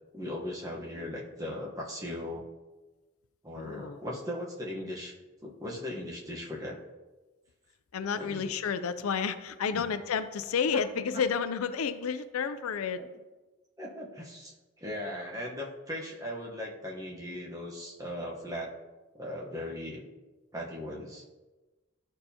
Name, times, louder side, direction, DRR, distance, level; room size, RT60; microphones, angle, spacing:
voice 1, 0.1-2.4 3.4-5.1 5.4-6.8 8.1-8.5 9.7-9.8 10.7-10.8 13.0-13.1 13.8-18.7 19.1-20.0 20.5-21.2, left 1 dB, 15° right, -3 dB, 1.0 m, -38 dB
voice 2, 3.6-4.0 7.9-13.0, left 6 dB, 85° left, 12 dB, 0.4 m, -31 dB
12.0 x 4.5 x 2.8 m, 1.2 s
head